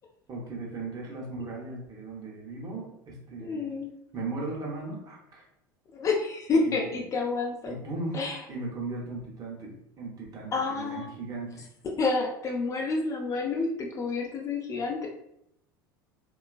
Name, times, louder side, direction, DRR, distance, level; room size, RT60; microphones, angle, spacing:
voice 1, 0.3-3.7 4.1-5.5 6.6-7.0 7.7-8.2 8.5-11.6, right 3 dB, 30° right, -2 dB, 0.8 m, -37 dB
voice 2, 3.4-4.0 5.9-7.8 8.1-8.4 10.5-11.1 12.0-15.1, left 3 dB, 25° left, 0 dB, 0.4 m, -29 dB
2.9 x 2.3 x 2.4 m, 0.78 s
figure-of-eight pair, 75°, 12 cm